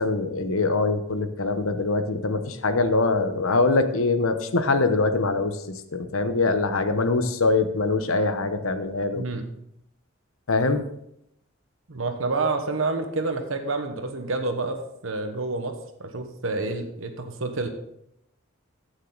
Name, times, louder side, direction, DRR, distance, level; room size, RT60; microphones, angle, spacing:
voice 1, 0.0-5.6 5.9-9.2 10.5-10.8, left 3 dB, 90° left, 9 dB, 1.0 m, -23 dB
voice 2, 9.1-9.5 11.9-14.8 15.0-17.7, right 3 dB, 75° right, 6 dB, 1.2 m, -28 dB
15.0 x 6.5 x 4.0 m, 0.77 s
head